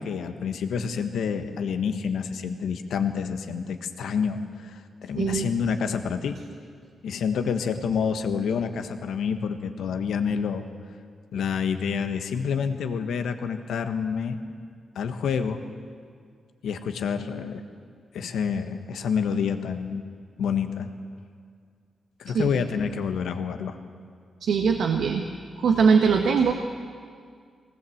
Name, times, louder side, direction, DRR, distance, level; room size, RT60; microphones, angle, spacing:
voice 1, 0.0-6.3 7.0-10.6 11.3-14.4 14.9-15.6 16.6-17.6 18.1-20.0 20.4-20.9 22.2-23.8, left 6 dB, 85° left, 7 dB, 1.4 m, -28 dB
voice 2, 5.1-5.5 22.3-22.5 24.4-25.3 25.6-26.5, right 5 dB, 80° right, 4 dB, 1.2 m, -21 dB
20.5 x 18.5 x 8.0 m, 2.1 s
cardioid pair, 85°, 0 cm